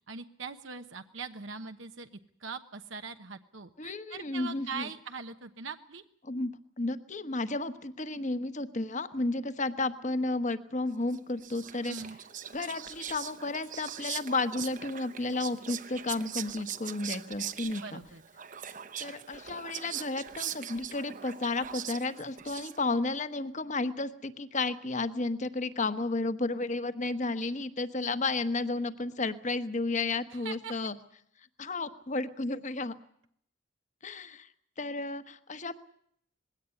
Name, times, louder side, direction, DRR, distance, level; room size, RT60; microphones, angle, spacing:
voice 1, 0.0-2.1 2.4-6.0 11.9-12.2 17.8-18.2 30.3-30.7, right 4 dB, 80° right, 7 dB, 1.1 m, -41 dB
voice 2, 3.8-4.8 6.2-6.5 6.8-12.0 12.5-18.0 19.0-30.9 31.6-32.9 34.0-34.5 34.8-35.8, left 3 dB, 40° left, 11 dB, 1.2 m, -32 dB
Whispering, 11.1-23.1, right 9 dB, 45° right, 0.9 m, -41 dB
21.0 x 17.0 x 9.8 m, 0.68 s
head